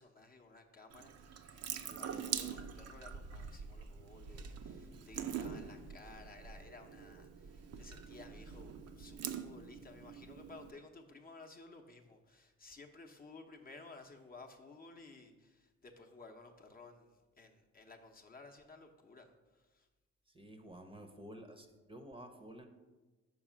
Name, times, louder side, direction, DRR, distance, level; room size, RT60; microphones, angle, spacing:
voice 1, 0.0-19.9, left 3 dB, 30° left, 3 dB, 0.8 m, -56 dB
Water tap faucet / Sink (filling or washing) / Drip, 0.9-10.7, right 7 dB, 55° right, 0.6 m, -44 dB
voice 2, 20.3-22.7, right 1 dB, 15° right, 5 dB, 0.7 m, -51 dB
5.5 x 4.8 x 6.0 m, 1.2 s
cardioid pair, 90°, 30 cm